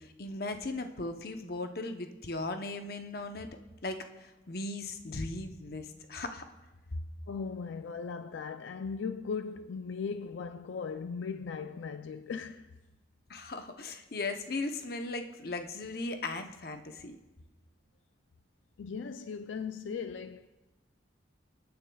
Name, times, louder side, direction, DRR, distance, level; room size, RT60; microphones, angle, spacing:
voice 1, 0.0-3.5 3.8-6.4 13.3-17.2, left 2 dB, 50° left, 0.7 m, -37 dB
voice 2, 7.3-12.7 18.8-20.5, left 5 dB, 75° left, 0.4 m, -38 dB
25.5 x 9.4 x 2.3 m
head